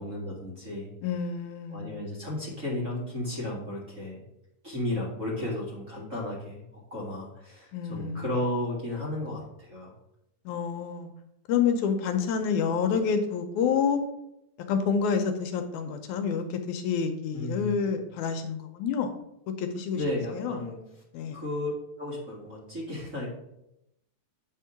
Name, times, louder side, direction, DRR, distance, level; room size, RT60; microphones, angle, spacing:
voice 1, 0.0-0.9 1.7-4.2 4.6-6.6 6.9-9.9 17.3-17.7 19.9-20.8 21.3-21.7 22.0-23.3, left 1 dB, 30° right, -7 dB, 1.7 m, -33 dB
voice 2, 1.0-2.1 7.7-8.4 10.5-11.1 11.5-14.0 14.7-19.2 19.6-20.0 20.3-20.6 21.1-21.4, left 6 dB, 80° left, 6 dB, 2.0 m, -28 dB
8.5 x 3.7 x 5.7 m, 0.83 s
omnidirectional pair, 3.6 m